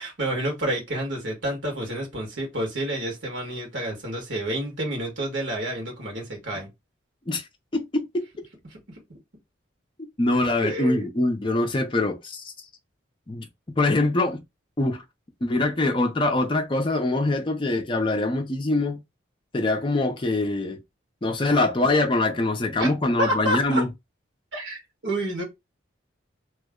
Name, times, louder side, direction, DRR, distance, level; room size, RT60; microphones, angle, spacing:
voice 1, 0.0-6.7 8.7-8.8 10.6-11.1 22.8-22.9 23.2-23.8 24.5-25.4, right 1 dB, 70° right, 1.5 m, -29 dB
voice 2, 7.7-8.3 10.2-12.5 13.3-13.5 13.8-14.4 14.8-15.0 15.4-19.0 19.5-20.8 21.2-23.9, left 2 dB, 25° left, 0.5 m, -23 dB
3.0 x 2.0 x 3.5 m
head